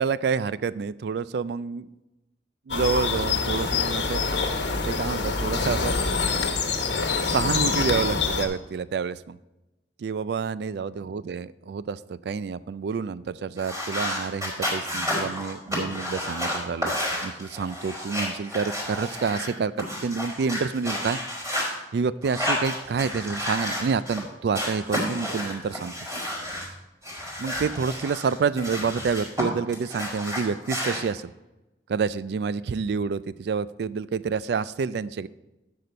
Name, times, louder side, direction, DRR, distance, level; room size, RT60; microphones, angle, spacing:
voice 1, 0.0-1.9 2.7-4.2 4.9-5.9 7.2-9.4 10.0-16.9 17.2-21.2 21.9-25.9 27.4-31.2 31.9-35.3, right 5 dB, 65° right, 17 dB, 0.3 m, -28 dB
sound 1, 2.7-8.4, left 4 dB, 85° left, 1.2 m, -25 dB
sound 2, 13.6-19.5 19.8-21.7 22.2-24.2 24.5-26.7 27.0-29.4 29.7-31.0, left 1 dB, 20° right, 3.4 m, -31 dB
10.5 x 6.8 x 4.4 m, 1.0 s
head